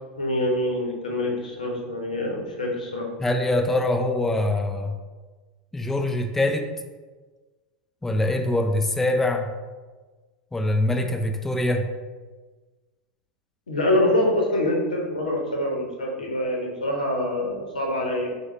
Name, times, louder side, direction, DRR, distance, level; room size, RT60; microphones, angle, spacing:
voice 1, 0.2-3.1 13.7-18.3, left 1 dB, 85° left, -1 dB, 0.7 m, -25 dB
voice 2, 3.2-4.9 5.7-6.7 8.0-9.5 10.5-11.9, left 1 dB, 10° left, 4 dB, 0.3 m, -23 dB
4.7 x 2.1 x 3.1 m, 1.3 s
figure-of-eight pair, 90°, 4 cm